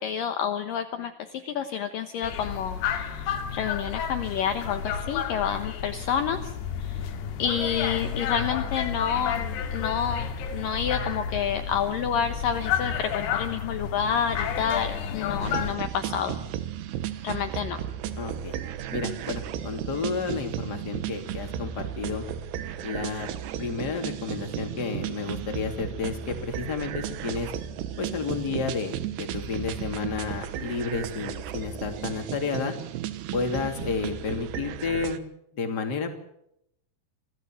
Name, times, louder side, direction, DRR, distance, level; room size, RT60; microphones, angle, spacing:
voice 1, 0.0-6.5 6.8-7.0 7.4-16.3 17.2-17.8, left 8 dB, 65° left, 7 dB, 2.5 m, -29 dB
sound 1, 2.2-15.8, left 7 dB, 85° left, 3.9 m, -31 dB
sound 2, 15.4-35.2, right 10 dB, 90° right, 3.3 m, -34 dB
voice 2, 18.2-18.5 18.9-22.2 22.8-23.3 23.6-27.5 28.0-32.7 33.3-35.2 35.5-36.1, left 5 dB, 30° left, 4 dB, 2.8 m, -31 dB
26.5 x 16.5 x 7.6 m, 0.77 s
omnidirectional pair, 4.6 m